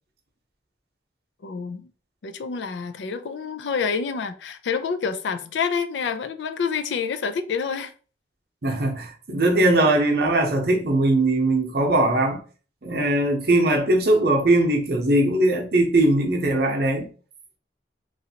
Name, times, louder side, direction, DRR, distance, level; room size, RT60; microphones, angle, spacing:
voice 1, 1.4-1.9 2.2-7.9, left 5 dB, 80° left, 0.4 m, -28 dB
voice 2, 8.6-12.4 12.8-17.1, right 1 dB, 60° right, 0.7 m, -20 dB
3.0 x 2.5 x 2.8 m
head